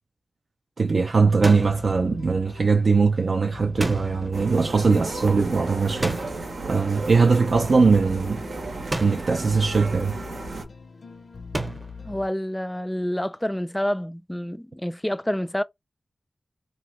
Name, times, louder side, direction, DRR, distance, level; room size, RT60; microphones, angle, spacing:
voice 1, 0.8-6.2 6.7-8.4 9.0-10.2, right 4 dB, 70° right, 0.4 m, -21 dB
sound 1, 1.4-1.9 3.8-4.4 6.0-6.6 8.9-9.4 11.5-12.0, right 2 dB, 30° right, 0.7 m, -30 dB
sound 2, 1.6-12.3, left 5 dB, 70° left, 0.5 m, -42 dB
sound 3, 4.3-10.6, right 3 dB, 90° right, 0.8 m, -34 dB
voice 2, 12.0-15.6, equal, 10° left, 0.3 m, -28 dB
2.8 x 2.2 x 3.0 m
wide cardioid pair, 80°, 0 cm